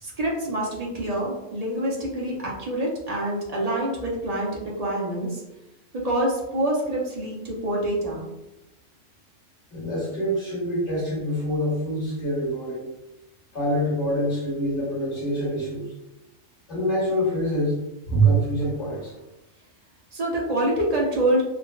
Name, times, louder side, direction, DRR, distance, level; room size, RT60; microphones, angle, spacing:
voice 1, 0.0-5.4 6.0-8.2 20.1-21.4, right 1 dB, 45° right, -4 dB, 0.5 m, -26 dB
voice 2, 9.7-12.9 13.5-15.9 16.7-17.8 18.1-19.1, right 1 dB, 65° left, -7 dB, 1.7 m, -25 dB
3.7 x 2.1 x 2.3 m, 0.94 s
omnidirectional pair, 1.3 m